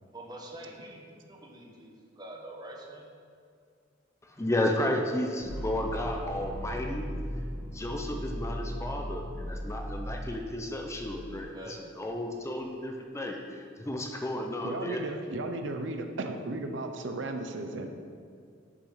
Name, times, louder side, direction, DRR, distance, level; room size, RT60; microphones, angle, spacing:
voice 1, 0.0-3.1 11.1-11.8 15.0-15.2, right 1 dB, 20° right, 0 dB, 1.1 m, -46 dB
voice 2, 4.2-7.1 7.6-15.0, left 1 dB, 15° left, 2 dB, 0.6 m, -33 dB
sound 1, 5.4-11.4, equal, 70° left, 1.9 m, -37 dB
voice 3, 14.6-17.9, right 2 dB, 70° right, 5 dB, 0.6 m, -35 dB
6.8 x 5.7 x 5.6 m, 2.3 s
head